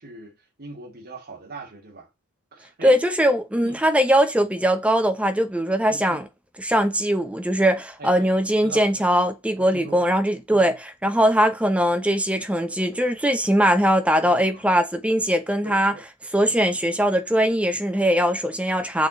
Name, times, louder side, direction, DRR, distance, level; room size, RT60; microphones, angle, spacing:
voice 1, 0.0-2.1 2.5-3.0 3.6-3.8 5.9-6.2 8.0-8.3 8.6-9.1 9.6-10.1 10.5-10.8 14.2-14.6 15.6-16.0, right 3 dB, 45° right, 2.5 m, -40 dB
voice 2, 2.8-6.2 6.6-15.9 16.3-19.1, equal, 5° right, 0.7 m, -21 dB
7.7 x 6.3 x 4.1 m
head